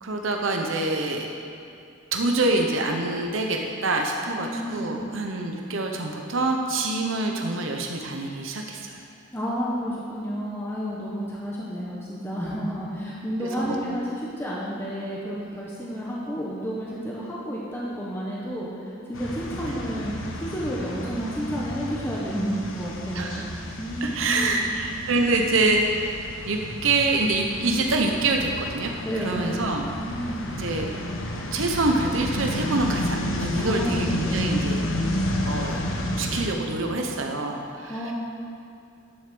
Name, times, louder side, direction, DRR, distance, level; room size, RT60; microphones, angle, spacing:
voice 1, 0.0-1.3 2.1-9.0 13.6-13.8 19.5-19.7 23.1-23.5 24.0-25.8 26.5-29.9 30.5-30.9 31.5-34.8 35.4-35.8 36.2-38.1, right 2 dB, 75° right, 2 dB, 0.9 m, -26 dB
voice 2, 4.3-5.0 9.3-18.7 19.1-23.5 23.8-24.7 29.0-29.5 30.0-30.6 33.5-34.5 37.9-38.1, equal, 10° left, -6 dB, 1.2 m, -31 dB
sound 1, 19.1-36.5, equal, 75° left, 1.2 m, -31 dB
10.5 x 6.9 x 6.8 m, 2.5 s
head